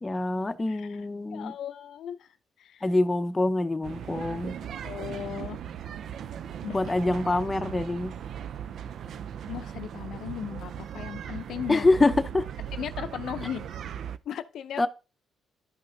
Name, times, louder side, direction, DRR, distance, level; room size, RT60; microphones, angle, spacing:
voice 1, 0.0-1.5 2.8-4.6 6.7-8.2 11.7-12.5 14.8-14.9, left 2 dB, 20° left, 0.7 m, -25 dB
voice 2, 0.7-1.1 1.3-2.9 4.8-5.6 6.6-6.8 9.5-11.9 12.7-13.6 14.3-14.8, left 9 dB, 70° left, 0.5 m, -37 dB
sound 1, 3.8-14.2, right 9 dB, 65° right, 0.4 m, -38 dB
11.5 x 5.6 x 2.6 m
cardioid pair, 90°, 0 cm